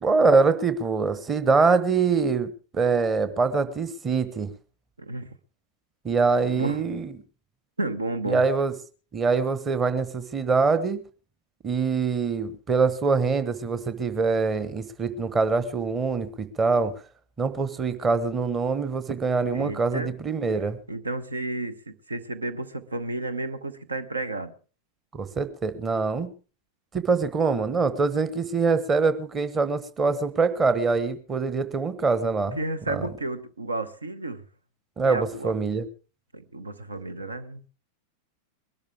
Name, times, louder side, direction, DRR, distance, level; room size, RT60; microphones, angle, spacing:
voice 1, 0.0-4.5 6.0-7.1 8.2-8.7 9.1-11.0 11.6-16.9 17.4-20.8 25.1-26.3 26.9-32.6 32.9-33.1 35.0-35.9, right 4 dB, 20° right, 13 dB, 1.2 m, -24 dB
voice 2, 5.0-5.3 6.5-6.8 7.8-8.4 19.5-20.1 20.9-24.5 32.6-34.4 35.0-35.5 36.3-37.6, right 2 dB, 80° right, 14 dB, 0.9 m, -32 dB
22.0 x 12.0 x 3.5 m, 0.36 s
figure-of-eight pair, 90°, 0 cm